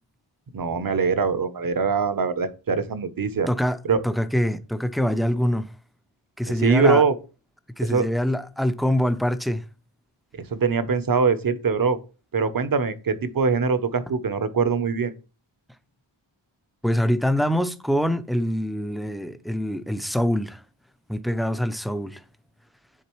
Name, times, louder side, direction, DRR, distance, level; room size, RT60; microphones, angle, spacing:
voice 1, 0.5-3.5 3.9-4.0 6.6-7.1 7.8-8.1 10.5-12.0 12.3-15.1, right 5 dB, 45° right, 0.8 m, -22 dB
voice 2, 3.5-3.8 4.0-5.7 6.4-7.0 7.8-9.6 16.8-20.6 21.1-22.2, equal, ahead, 0.5 m, -24 dB
10.0 x 3.9 x 3.1 m
wide cardioid pair, 100°, 49 cm